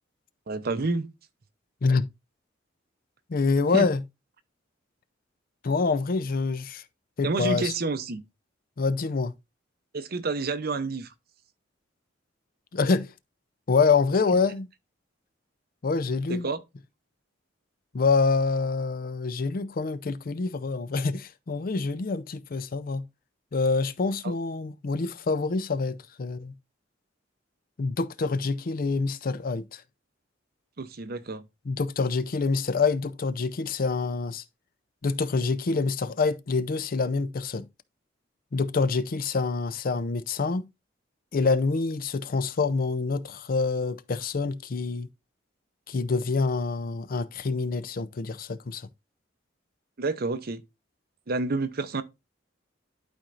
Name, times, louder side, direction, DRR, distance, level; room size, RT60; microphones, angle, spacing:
voice 1, 0.5-1.1 3.7-3.9 7.2-8.2 9.9-11.1 16.3-16.6 24.2-24.3 30.8-31.4 50.0-50.6 51.3-52.0, right 3 dB, 55° right, 0.7 m, -29 dB
voice 2, 3.3-4.0 5.6-6.8 7.2-7.7 8.8-9.3 12.7-13.1 13.7-14.7 15.8-16.5 17.9-23.0 23.5-26.5 27.8-29.8 31.7-34.4 35.0-37.7 38.5-40.7 41.3-45.1 45.9-48.9, left 4 dB, 50° left, 0.5 m, -26 dB
11.5 x 4.4 x 2.5 m
head